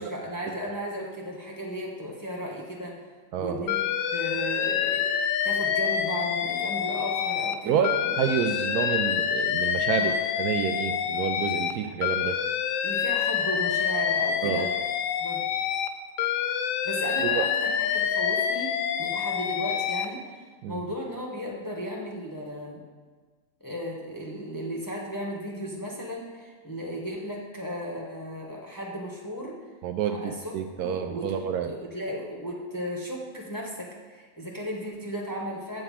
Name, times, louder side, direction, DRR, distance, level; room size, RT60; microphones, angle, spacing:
voice 1, 0.0-3.1 3.4-3.8 4.1-8.1 9.9-10.2 12.8-14.7 15.2-15.4 16.8-22.8 23.6-29.6 30.1-31.3 31.7-35.8, equal, 15° left, -3 dB, 0.9 m, -35 dB
voice 2, 3.3-3.7 7.6-12.4 14.4-14.7 17.2-17.4 20.6-20.8 29.8-31.7, right 8 dB, 75° right, 6 dB, 1.0 m, -28 dB
Alarm, 3.7-7.5 7.8-11.7 12.0-15.9 16.2-20.1, left 8 dB, 70° left, 0.8 m, -27 dB
7.9 x 4.7 x 7.2 m, 1.5 s
omnidirectional pair, 1.8 m